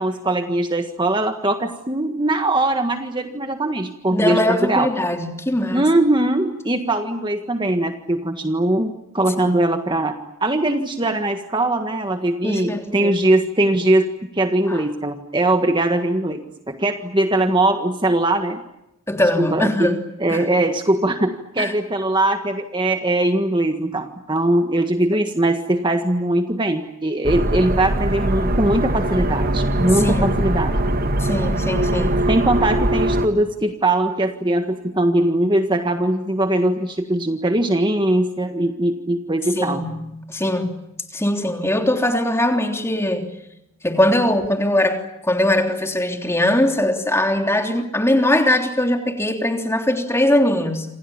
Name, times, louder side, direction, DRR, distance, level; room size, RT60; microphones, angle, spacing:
voice 1, 0.0-4.9 5.7-18.6 19.4-30.7 31.9-39.8, right 1 dB, 20° right, 6 dB, 1.6 m, -21 dB
voice 2, 4.1-5.8 9.4-9.5 12.4-13.2 14.7-14.8 19.1-20.0 20.3-20.4 21.6-21.7 30.0-30.4 31.2-32.2 39.5-40.8 41.1-43.3 43.8-50.9, left 1 dB, 10° left, 4 dB, 3.3 m, -21 dB
sound 1, 27.2-33.3, right 1 dB, 40° right, 1.9 m, -21 dB
28.0 x 28.0 x 7.2 m, 0.86 s
head